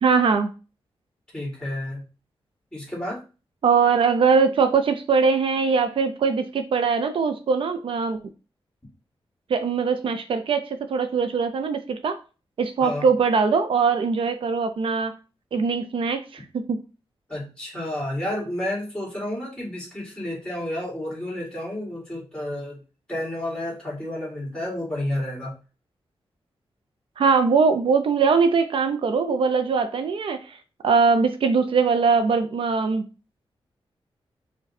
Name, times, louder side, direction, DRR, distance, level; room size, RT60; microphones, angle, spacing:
voice 1, 0.0-0.5 3.6-8.2 9.5-12.2 12.6-15.1 15.5-16.8 27.2-30.6 30.8-33.0, right 5 dB, 65° right, 8 dB, 0.4 m, -21 dB
voice 2, 1.3-2.0 2.7-3.2 12.8-13.1 17.3-22.8 23.1-25.5, left 1 dB, 10° left, -4 dB, 2.1 m, -31 dB
4.7 x 2.2 x 4.1 m, 0.33 s
wide cardioid pair, 175°, 10 cm